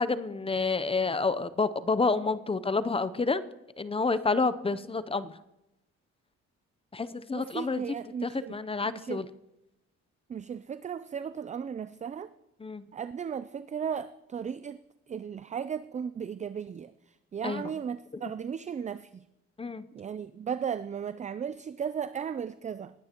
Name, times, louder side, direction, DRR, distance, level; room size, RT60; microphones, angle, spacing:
voice 1, 0.0-3.4 3.8-5.4 6.9-7.8 8.2-9.3 12.6-12.8 17.4-17.7 19.6-19.8, left 4 dB, 20° left, 14 dB, 0.6 m, -29 dB
voice 2, 7.3-8.6 8.9-9.2 10.3-12.3 12.9-14.8 15.1-19.2 19.9-22.9, right 7 dB, 25° right, 14 dB, 0.3 m, -36 dB
20.0 x 9.5 x 2.9 m, 0.90 s
cardioid pair, 90°, 30 cm